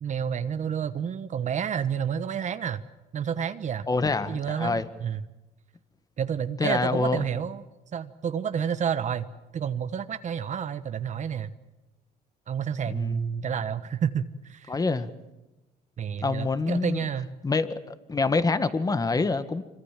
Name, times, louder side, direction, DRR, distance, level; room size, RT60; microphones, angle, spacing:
voice 1, 0.0-2.8 3.1-3.9 4.3-5.2 6.2-7.6 7.9-9.3 9.5-11.5 12.5-14.8 16.0-17.3, right 8 dB, 45° right, 11 dB, 1.2 m, -30 dB
voice 2, 3.9-4.8 6.6-7.2 12.9-13.2 14.7-15.1 16.2-17.0 17.4-19.6, left 3 dB, 20° left, 12 dB, 1.7 m, -26 dB
26.5 x 24.5 x 7.5 m, 1.0 s
cardioid pair, 110°, 17 cm